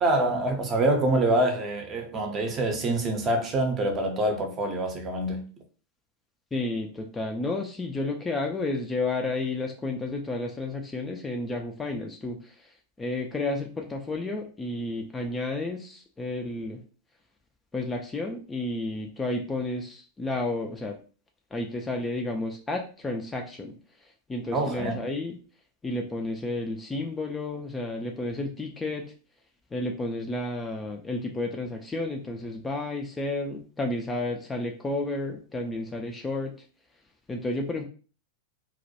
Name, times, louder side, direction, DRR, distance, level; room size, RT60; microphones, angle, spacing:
voice 1, 0.0-5.4 24.5-25.0, right 1 dB, 25° right, 0.6 m, -25 dB
voice 2, 6.5-16.8 17.7-21.0 21.5-23.7 24.0-25.4 25.8-29.1 29.7-36.5 37.3-37.8, left 2 dB, 15° left, 0.3 m, -31 dB
2.2 x 2.1 x 2.7 m
figure-of-eight pair, 90°, 0 cm